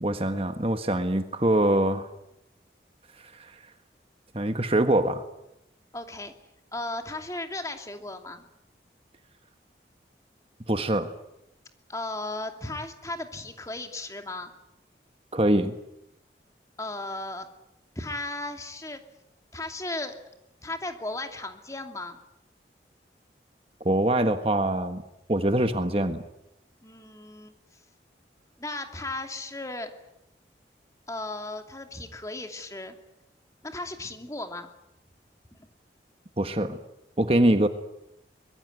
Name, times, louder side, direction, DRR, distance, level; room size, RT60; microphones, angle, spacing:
voice 1, 0.0-2.1 3.4-3.5 4.3-5.2 10.7-11.1 15.3-15.7 23.8-25.0 25.3-26.2 36.4-36.8 37.2-37.7, right 1 dB, 35° right, 8 dB, 1.4 m, -23 dB
voice 2, 5.9-6.3 6.7-8.4 11.9-14.5 16.8-17.5 18.0-19.0 19.5-20.2 20.6-22.2 26.8-27.5 28.6-29.9 31.1-32.9 33.6-34.7, left 2 dB, 20° left, 5 dB, 2.6 m, -35 dB
24.0 x 22.5 x 9.4 m, 0.84 s
head